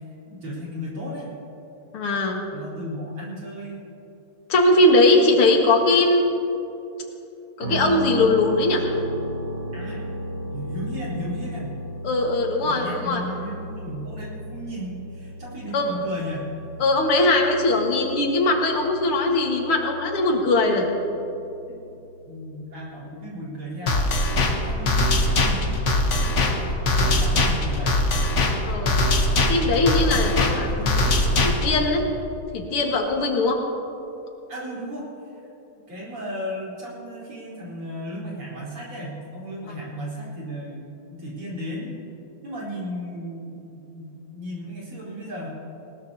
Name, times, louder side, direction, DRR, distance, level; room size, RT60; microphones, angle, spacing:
voice 1, 0.0-1.4 2.5-3.9 9.7-10.1 10.5-11.7 12.6-16.5 21.7-24.2 24.6-28.0 30.1-31.2 34.5-35.5 35.9-42.0 42.4-45.5, equal, 80° right, -6 dB, 4.9 m, -35 dB
voice 2, 1.9-2.4 4.5-6.3 7.6-8.8 12.0-13.2 15.7-15.9 16.8-20.9 28.6-28.9 29.5-30.7 31.4-32.1 32.5-33.6 39.7-39.8, left 2 dB, 90° left, 1 dB, 2.5 m, -20 dB
sound 1, 7.6-23.4, equal, 50° right, 3.3 m, -36 dB
sound 2, 23.9-31.8, left 2 dB, 45° left, 1.1 m, -21 dB
20.0 x 19.5 x 2.8 m, 2.9 s
omnidirectional pair, 2.3 m